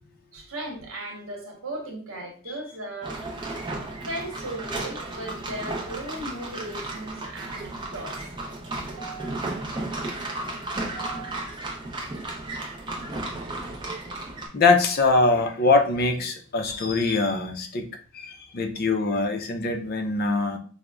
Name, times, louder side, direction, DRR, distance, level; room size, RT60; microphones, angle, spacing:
voice 1, 0.3-3.2 4.1-8.2 9.0-9.4 10.9-11.4 13.3-13.4, right 1 dB, 75° right, 0 dB, 1.0 m, -37 dB
sound 1, 3.0-14.5, right 2 dB, 20° right, 0.5 m, -34 dB
voice 2, 14.5-17.8 18.1-20.6, left 3 dB, 45° left, 6 dB, 0.4 m, -23 dB
4.9 x 2.0 x 2.3 m, 0.42 s
head